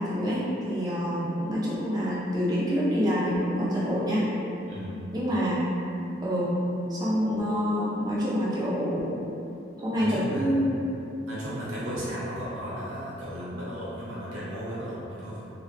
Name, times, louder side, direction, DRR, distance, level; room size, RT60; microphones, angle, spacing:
voice 1, 0.0-4.4 5.1-5.6 6.2-6.6 6.9-9.2 9.8-10.9, equal, 20° right, -8 dB, 0.4 m, -27 dB
voice 2, 4.7-5.1 9.9-10.5 11.2-15.5, equal, 90° right, -9 dB, 0.8 m, -35 dB
2.7 x 2.2 x 2.5 m, 2.7 s
head